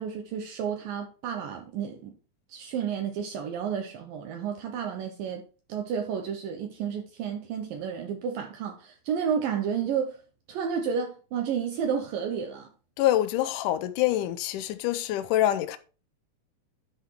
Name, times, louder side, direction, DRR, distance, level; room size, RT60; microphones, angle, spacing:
voice 1, 0.0-2.1 2.5-5.4 5.7-10.2 10.5-12.7, right 7 dB, 70° right, 2.4 m, -31 dB
voice 2, 13.0-15.8, left 13 dB, 85° left, 1.8 m, -25 dB
9.9 x 5.8 x 4.4 m
omnidirectional pair, 4.6 m